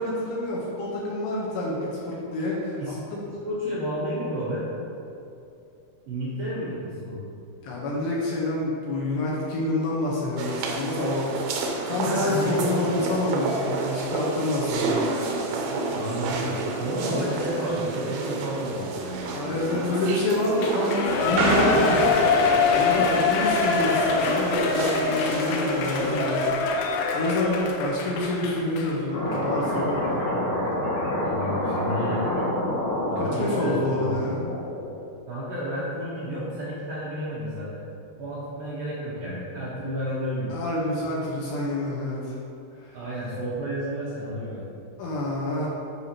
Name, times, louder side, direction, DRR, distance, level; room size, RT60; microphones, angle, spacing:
voice 1, 0.0-2.8 3.1-3.2 7.6-11.3 11.9-15.0 17.0-17.2 19.3-22.1 22.7-26.8 27.1-30.3 33.2-34.4 40.5-42.4 42.8-43.0 45.0-45.7, left 1 dB, 75° left, -5 dB, 2.9 m, -27 dB
voice 2, 3.4-4.7 6.1-7.2 12.0-12.9 15.9-16.5 16.8-19.4 31.2-32.2 33.1-34.2 35.3-37.8 38.2-40.6 42.9-44.7, equal, 65° right, -9 dB, 2.4 m, -31 dB
sound 1, 10.4-26.5, right 3 dB, 90° right, 2.2 m, -29 dB
Shout / Cheering, 20.6-28.9 29.3-29.4, left 4 dB, 90° left, 3.3 m, -24 dB
sound 2, 29.1-34.9, left 1 dB, 50° left, 2.4 m, -27 dB
12.0 x 4.9 x 2.9 m, 2.7 s
omnidirectional pair, 5.6 m